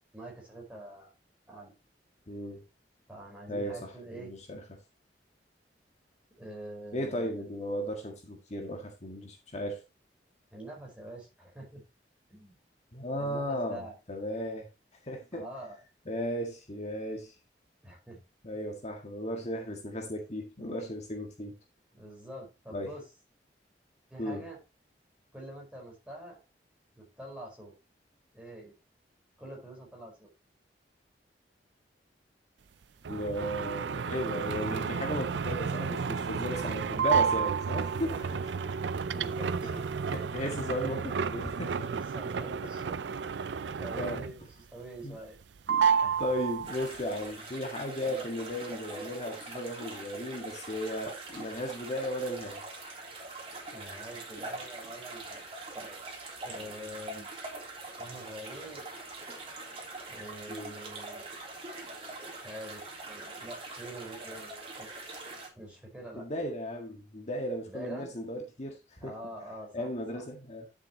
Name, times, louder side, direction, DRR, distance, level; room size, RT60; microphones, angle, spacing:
voice 1, 0.1-1.1 1.5-1.7 3.1-4.3 6.4-7.3 10.5-11.8 12.3-12.5 13.2-13.9 15.3-15.8 17.8-18.2 21.9-23.0 24.1-24.6 25.3-26.4 27.0-27.8 28.3-28.7 29.4-30.3 38.1-38.5 39.0-39.9 41.7-43.0 43.8-44.4 44.7-45.4 46.0-46.2 48.0-48.3 53.7-55.5 55.7-56.0 56.4-57.3 58.0-58.9 60.1-61.2 62.3-64.9 65.5-66.3 67.7-68.1 69.0-70.2, right 1 dB, 5° right, 4.9 m, -45 dB
voice 2, 2.3-2.6 3.5-4.6 6.9-9.8 12.9-14.7 15.0-15.4 16.1-17.3 18.4-21.5 22.7-22.9 24.2-24.4 33.1-38.1 39.6-39.8 40.1-41.7 43.4-43.6 44.0-44.2 45.0-45.2 45.7-52.6 60.5-60.7 66.1-69.1 69.7-70.7, equal, 40° left, 1.8 m, -35 dB
sound 1, 33.0-44.5 44.9-45.4 45.7-47.0, right 6 dB, 80° right, 0.5 m, -31 dB
sound 2, 46.6-65.5, right 2 dB, 35° right, 3.3 m, -43 dB
11.0 x 7.3 x 3.0 m
head